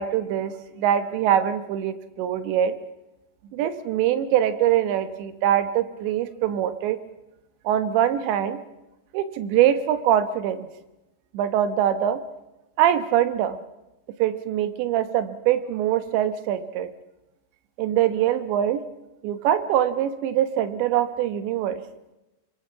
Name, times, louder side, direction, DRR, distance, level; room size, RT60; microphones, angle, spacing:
voice 1, 0.0-2.7 3.5-7.0 7.7-8.6 9.1-10.7 11.3-12.2 12.8-13.6 14.2-16.9 17.8-18.8 19.2-21.8, right 10 dB, 85° right, 11 dB, 3.6 m, -23 dB
26.0 x 21.5 x 5.7 m, 0.97 s
omnidirectional pair, 5.0 m